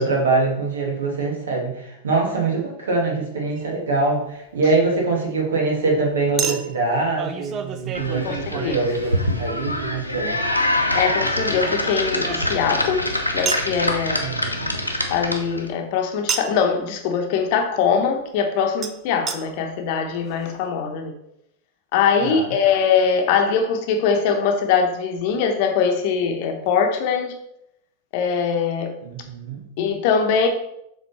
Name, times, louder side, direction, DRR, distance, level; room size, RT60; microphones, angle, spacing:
voice 1, 0.0-10.4 14.2-14.7 22.2-22.5 29.0-29.6, right 3 dB, 65° right, -1 dB, 1.8 m, -24 dB
Chink clink, 3.6-3.7 6.4-9.6 11.1-12.8 13.5-13.7 16.3-16.7 18.8-18.9 19.3-19.4 20.0-20.1 20.3-20.4, right 7 dB, 30° right, 0.6 m, -30 dB
sound 1, 7.9-15.7, left 1 dB, 85° left, 0.8 m, -25 dB
voice 2, 8.2-8.7 10.9-13.0 13.3-14.2 15.1-21.1 21.9-27.3 28.1-28.9 29.8-30.5, left 6 dB, 45° left, 5 dB, 1.0 m, -22 dB
7.1 x 3.8 x 4.2 m, 0.78 s
figure-of-eight pair, 90°, 0 cm